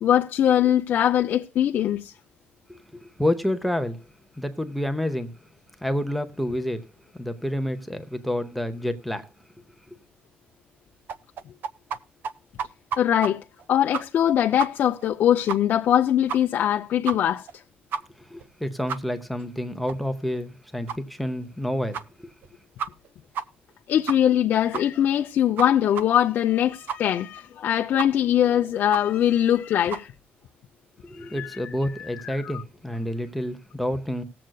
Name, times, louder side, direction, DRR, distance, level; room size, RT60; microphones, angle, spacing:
voice 1, 0.0-2.1 13.0-13.4 13.7-17.5 23.9-30.1 31.2-32.5, left 10 dB, 55° left, 0.5 m, -22 dB
voice 2, 2.7-4.0 4.4-5.3 5.8-6.8 7.1-9.3 18.2-22.3 31.0-34.2, left 1 dB, ahead, 0.7 m, -29 dB
sound 1, 11.1-12.0 12.2-12.3 12.6-13.3 13.6-13.7 13.9-14.3 14.6-14.7 15.0-15.1 15.5-15.6 15.9-16.0 16.3-16.6 17.1-17.2 17.5-17.6 17.9-18.0 18.4-18.5 18.9-19.0 19.4-19.5 19.9-20.0 20.3-20.4 20.9-21.0 21.4-21.5 21.9-22.0 22.4-22.5 22.8-23.1 23.3-23.4 23.7-23.8 24.1-24.4 24.7-24.8 25.2-25.3 25.6-25.7 25.9-26.0 26.4-26.5 26.9-27.0 27.4-27.5 28.0-28.1 28.4-28.5 28.9-29.0 29.4-29.5 29.9-30.0, right 6 dB, 60° right, 0.6 m, -30 dB
19.5 x 7.7 x 2.3 m
cardioid pair, 170°, 4 cm